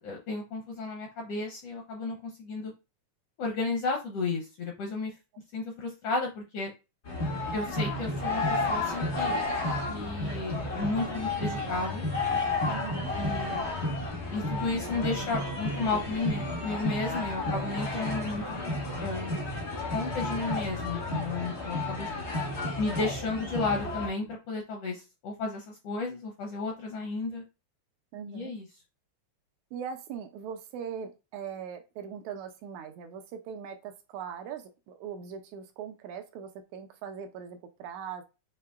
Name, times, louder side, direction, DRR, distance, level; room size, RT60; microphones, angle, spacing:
voice 1, 0.0-2.7 3.4-5.1 5.5-6.7 7.5-9.4 9.9-12.0 13.1-13.7 14.3-18.4 19.0-19.4 19.9-22.1 22.8-27.4 28.3-28.7, left 3 dB, 80° left, 1.4 m, -33 dB
sound 1, 7.1-24.1, left 2 dB, 55° left, 0.7 m, -32 dB
voice 2, 12.7-13.1 22.5-22.6 28.1-28.6 29.7-38.2, right 7 dB, 80° right, 1.8 m, -40 dB
6.6 x 2.8 x 2.3 m
omnidirectional pair, 3.5 m